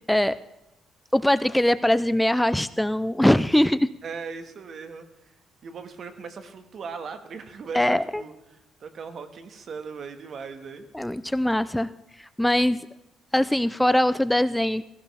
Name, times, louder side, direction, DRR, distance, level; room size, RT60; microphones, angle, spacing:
voice 1, 1.1-3.9 7.7-8.2 10.9-11.9 12.2-12.9 13.3-14.8, left 1 dB, 5° left, 15 dB, 0.4 m, -22 dB
voice 2, 4.0-5.3 5.6-10.9, right 5 dB, 55° right, 8 dB, 1.7 m, -39 dB
17.5 x 16.5 x 3.5 m, 0.94 s
cardioid pair, 90°, 0 cm